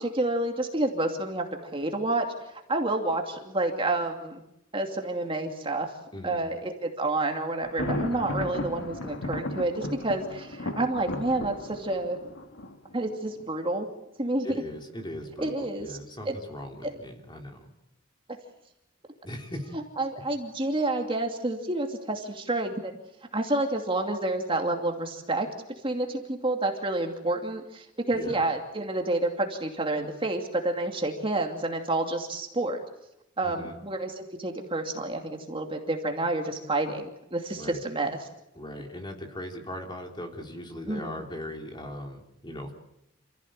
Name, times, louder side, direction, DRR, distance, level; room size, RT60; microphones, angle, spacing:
voice 1, 0.0-2.3 2.7-4.4 4.7-5.9 6.2-12.2 12.9-13.9 14.2-14.6 15.4-16.0 16.2-16.4 16.8-16.9 19.7-22.9 23.3-25.5 25.8-32.8 33.4-38.3 40.9-41.2, right 2 dB, 25° right, 3 dB, 2.7 m, -29 dB
voice 2, 6.1-6.4 14.4-17.7 19.2-19.7 28.1-28.4 33.4-33.8 37.5-37.8 38.5-42.7, left 1 dB, 25° left, 3 dB, 3.4 m, -39 dB
Thunder, 7.6-13.4, left 1 dB, 80° left, 1.9 m, -35 dB
28.0 x 16.0 x 9.0 m, 0.86 s
head